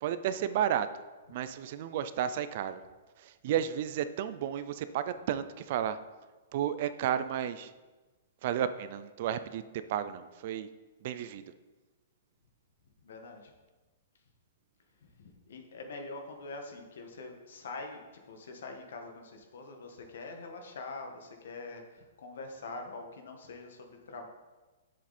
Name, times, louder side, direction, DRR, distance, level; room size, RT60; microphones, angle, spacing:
voice 1, 0.0-0.9 1.3-2.8 3.2-6.0 6.5-7.7 8.4-9.6 9.9-10.7 11.0-11.4, right 10 dB, 35° right, 12 dB, 0.4 m, -32 dB
voice 2, 13.0-13.5 15.2-24.3, left 3 dB, 60° left, 3 dB, 1.7 m, -44 dB
11.0 x 7.5 x 4.3 m, 1.2 s
hypercardioid pair, 180°, 0 cm